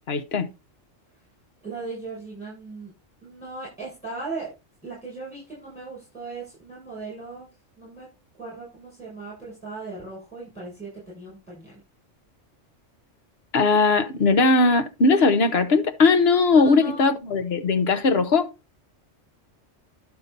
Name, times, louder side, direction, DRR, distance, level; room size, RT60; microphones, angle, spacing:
voice 1, 0.1-0.5 13.5-18.5, left 3 dB, 55° left, 1.2 m, -19 dB
voice 2, 1.6-2.9 3.2-4.5 4.8-7.5 7.8-8.1 8.4-11.8 16.5-17.2, right 3 dB, 5° left, 6.5 m, -37 dB
11.5 x 6.0 x 4.0 m
omnidirectional pair, 1.3 m